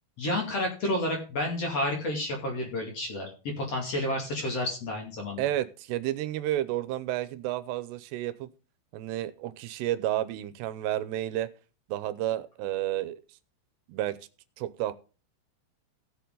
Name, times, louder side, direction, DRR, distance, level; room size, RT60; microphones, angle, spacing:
voice 1, 0.2-5.4, left 1 dB, 40° left, 3.1 m, -30 dB
voice 2, 5.4-8.5 8.9-11.5 11.9-13.2 13.9-14.2 14.6-14.9, right 13 dB, 85° right, 2.8 m, -31 dB
16.5 x 7.0 x 3.9 m
omnidirectional pair, 4.9 m